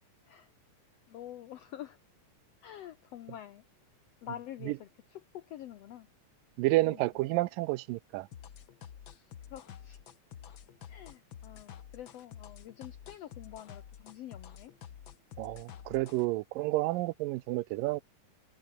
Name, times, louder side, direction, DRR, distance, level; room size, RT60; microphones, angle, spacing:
voice 1, 1.1-2.0 2.6-3.6 4.2-6.1 6.8-7.0 9.4-10.0 10.9-14.7, left 11 dB, 75° left, 1.4 m, -47 dB
voice 2, 6.6-8.3 15.4-18.0, right 19 dB, 85° right, 2.3 m, -30 dB
sound 1, 8.3-16.3, left 9 dB, 55° left, 1.5 m, -49 dB
omnidirectional pair, 3.9 m